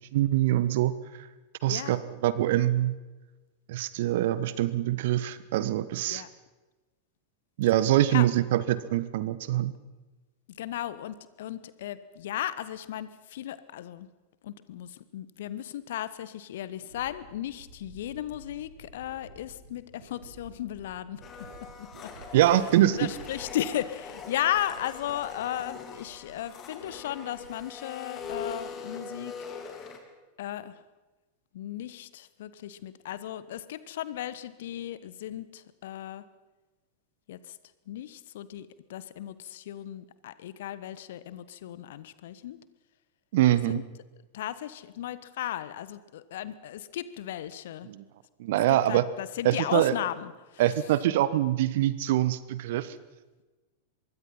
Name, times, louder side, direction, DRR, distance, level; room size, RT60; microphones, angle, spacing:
voice 1, 0.1-1.0 1.6-2.9 3.7-6.2 7.6-9.7 22.3-23.1 43.3-43.8 47.9-48.0 48.4-49.0 49.4-49.9 50.6-52.9, right 13 dB, 55° right, 16 dB, 1.2 m, -24 dB
voice 2, 1.7-2.0 6.1-6.3 8.1-8.3 10.6-14.1 14.4-21.2 21.8-22.1 22.9-29.3 30.4-30.8 31.5-36.2 37.3-37.6 37.9-42.6 43.5-43.8 44.3-47.9 48.7-50.3, left 12 dB, 55° left, 16 dB, 1.2 m, -35 dB
sound 1, 16.1-16.2 16.8-26.5 26.8-27.6 27.9-28.8 29.0-29.6, right 2 dB, 70° right, 7.8 m, -52 dB
Domestic sounds home sounds, 21.2-30.0, left 5 dB, 30° left, 3.4 m, -42 dB
25.0 x 22.0 x 5.7 m, 1.2 s
figure-of-eight pair, 90°, 0 cm